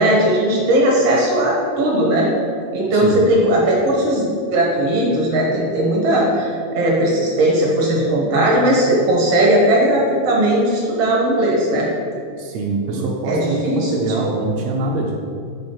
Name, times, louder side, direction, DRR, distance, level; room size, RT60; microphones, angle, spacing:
voice 1, 0.0-2.3 2.7-11.9 12.9-13.9, right 1 dB, 65° right, -3 dB, 1.7 m, -17 dB
voice 2, 12.4-15.1, right 3 dB, 85° right, -1 dB, 1.5 m, -23 dB
6.3 x 5.0 x 4.3 m, 2.3 s
omnidirectional pair, 3.9 m